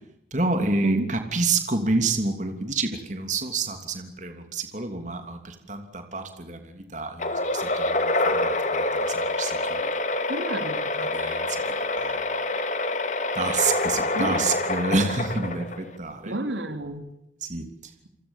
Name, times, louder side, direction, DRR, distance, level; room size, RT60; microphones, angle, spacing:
voice 1, 0.3-9.9 11.0-12.3 13.3-16.4 17.4-17.9, right 3 dB, 40° right, 6 dB, 3.1 m, -29 dB
sound 1, 7.2-16.0, left 2 dB, 40° left, 2.3 m, -26 dB
voice 2, 10.3-11.1 14.2-14.4 16.3-17.1, right 1 dB, 85° right, 8 dB, 3.4 m, -30 dB
29.0 x 24.0 x 7.4 m, 0.81 s
head